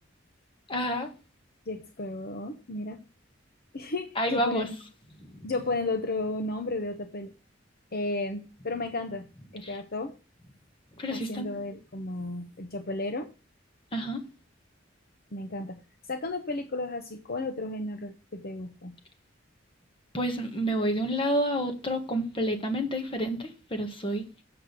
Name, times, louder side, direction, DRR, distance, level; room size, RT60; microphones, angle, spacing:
voice 1, 0.7-1.1 4.1-4.7 5.3-5.5 9.6-9.8 11.0-11.5 13.9-14.2 20.1-24.3, equal, 30° left, 1.7 m, -29 dB
voice 2, 1.7-3.0 3.7-4.7 5.4-7.3 7.9-9.3 9.5-10.1 11.1-13.3 15.3-15.8 16.1-18.9, left 2 dB, 50° left, 0.9 m, -33 dB
7.9 x 6.2 x 6.7 m
head